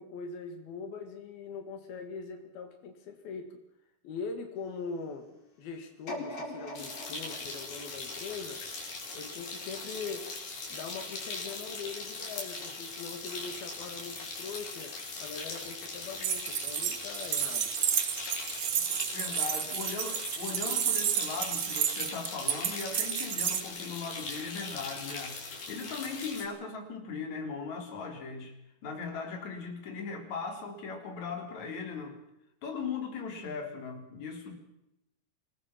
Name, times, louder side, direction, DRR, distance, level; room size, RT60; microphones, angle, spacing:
voice 1, 0.0-3.6 4.0-5.3 5.6-8.6 9.1-10.3 10.7-14.9 15.2-17.8, left 5 dB, 85° left, 5 dB, 4.0 m, -41 dB
sound 1, 6.1-9.1 9.7-9.8, left 1 dB, 35° left, 4.9 m, -43 dB
sound 2, 6.8-26.4, left 3 dB, 70° left, 6.0 m, -40 dB
sound 3, 16.2-23.6, right 9 dB, 55° right, 1.9 m, -31 dB
voice 2, 18.7-25.4 25.7-28.5 28.8-32.2 32.6-34.5, left 5 dB, 50° left, 3 dB, 4.6 m, -39 dB
26.5 x 19.5 x 5.9 m, 0.86 s
omnidirectional pair, 4.2 m